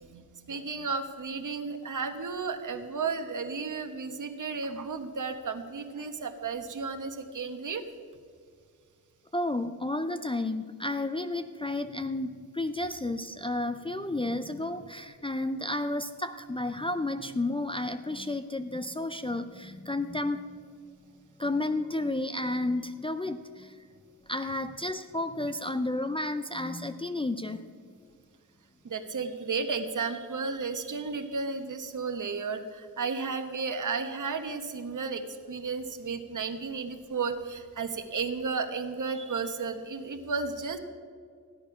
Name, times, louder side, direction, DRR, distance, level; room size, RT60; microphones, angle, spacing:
voice 1, 0.1-7.9 28.8-40.8, right 4 dB, 60° right, 7 dB, 1.2 m, -33 dB
voice 2, 9.3-20.6 21.4-23.8 24.3-27.7, left 2 dB, 15° left, 7 dB, 0.4 m, -32 dB
15.5 x 10.5 x 5.8 m, 2.1 s
wide cardioid pair, 150°, 35 cm